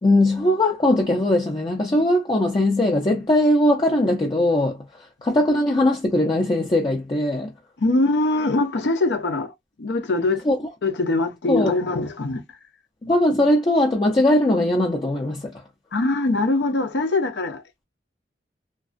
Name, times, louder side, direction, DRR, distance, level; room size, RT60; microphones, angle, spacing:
voice 1, 0.0-4.9 5.2-7.5 10.4-10.6 11.5-11.7 13.0-15.5, left 1 dB, 25° left, 0.5 m, -20 dB
voice 2, 7.8-9.5 9.8-10.4 10.8-12.4 15.9-17.6, left 2 dB, 70° left, 0.6 m, -22 dB
2.4 x 2.2 x 2.5 m
head